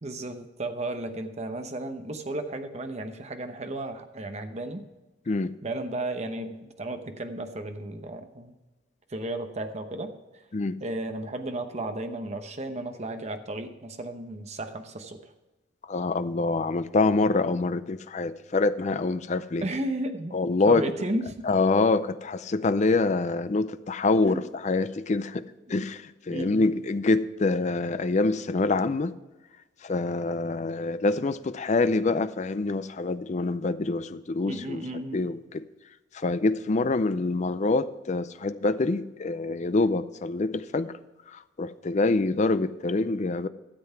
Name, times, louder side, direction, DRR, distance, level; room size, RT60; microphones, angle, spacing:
voice 1, 0.0-4.8 5.6-8.6 9.1-10.1 10.8-15.2 19.6-20.4 20.7-21.5 24.2-24.4 26.3-26.7 34.5-35.2, right 1 dB, 35° right, 7 dB, 0.9 m, -34 dB
voice 2, 15.9-19.6 20.3-20.8 21.5-25.4 25.7-29.1 29.8-34.8 35.1-35.6 36.1-40.9 41.6-43.5, left 3 dB, 40° left, 13 dB, 0.5 m, -25 dB
12.5 x 7.8 x 4.5 m, 1.1 s
head